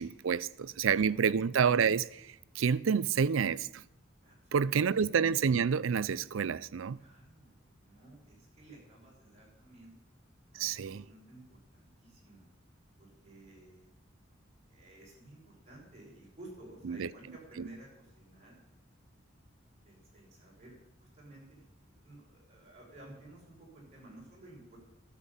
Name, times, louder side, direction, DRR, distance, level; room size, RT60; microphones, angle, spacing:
voice 1, 0.0-2.2 2.6-3.7 4.5-7.0 10.6-11.0 16.9-17.1, right 6 dB, 75° right, 0.4 m, -28 dB
voice 2, 0.8-1.5 4.2-5.0 6.9-10.0 10.5-12.5 13.0-13.9 14.7-18.6 19.8-21.7 22.0-24.8, right 1 dB, 35° right, 6.2 m, -54 dB
12.0 x 7.3 x 9.9 m
head